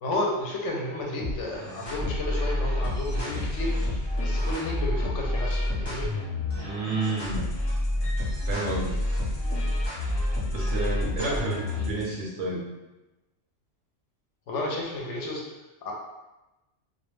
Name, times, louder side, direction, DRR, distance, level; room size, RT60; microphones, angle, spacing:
voice 1, 0.0-6.1 11.2-11.4 14.5-15.4 15.8-15.9, left 1 dB, 70° left, -2 dB, 0.8 m, -32 dB
sound 1, 1.2-12.0, left 1 dB, 30° left, 0.5 m, -28 dB
voice 2, 6.6-7.5 8.5-9.0 10.5-12.6, right 2 dB, 70° right, -2 dB, 0.8 m, -30 dB
2.3 x 2.0 x 3.1 m, 1.0 s
omnidirectional pair, 1.3 m